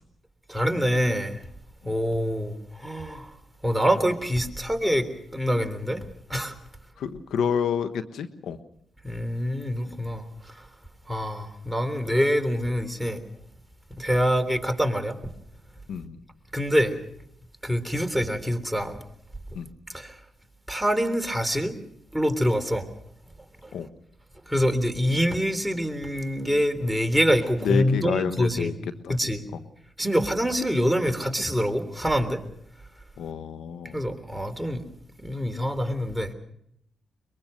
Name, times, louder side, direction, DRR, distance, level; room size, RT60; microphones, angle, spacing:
voice 1, 0.5-1.4 1.8-3.3 3.6-6.5 9.0-10.7 11.1-13.2 14.0-15.2 16.5-17.0 17.6-19.0 19.9-20.2 20.7-21.8 22.1-22.9 23.6-23.7 24.5-28.7 29.1-29.4 30.0-32.4 33.9-34.8 35.2-36.3, equal, 5° right, 8 dB, 3.4 m, -25 dB
voice 2, 7.0-8.6 15.9-16.2 19.5-19.7 23.7-23.9 27.6-28.7 29.0-29.1 33.2-34.0, left 7 dB, 75° left, 10 dB, 1.2 m, -28 dB
23.0 x 22.5 x 6.5 m, 0.73 s
supercardioid pair, 50°, 0 cm